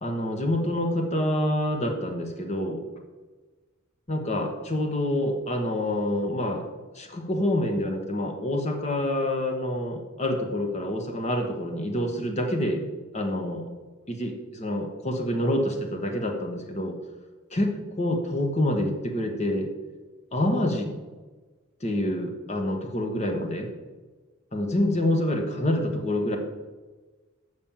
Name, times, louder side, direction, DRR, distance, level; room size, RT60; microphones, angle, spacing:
voice 1, 0.0-2.9 4.1-6.7 6.9-12.8 13.1-13.7 14.1-16.9 17.5-19.7 20.3-20.9 21.8-23.7 24.5-26.4, left 1 dB, 30° left, 4 dB, 1.2 m, -27 dB
7.2 x 6.3 x 7.3 m, 1.3 s
head